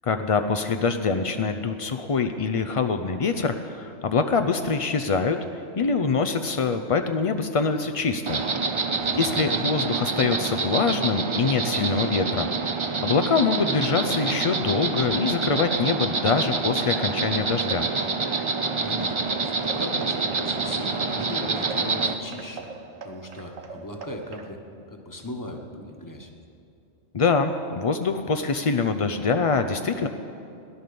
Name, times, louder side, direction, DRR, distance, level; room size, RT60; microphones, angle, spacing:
voice 1, 0.0-8.4 9.2-17.9 27.1-30.1, left 4 dB, 60° left, 7 dB, 0.3 m, -24 dB
Insect, 8.3-22.1, right 4 dB, 35° right, 0.5 m, -27 dB
voice 2, 8.9-9.3 18.8-22.7 23.0-24.6 24.9-26.3, left 1 dB, 15° left, 3 dB, 1.2 m, -38 dB
sound 1, 15.7-24.5, right 4 dB, 90° right, 1.4 m, -42 dB
16.5 x 11.0 x 6.9 m, 2.7 s
omnidirectional pair, 1.3 m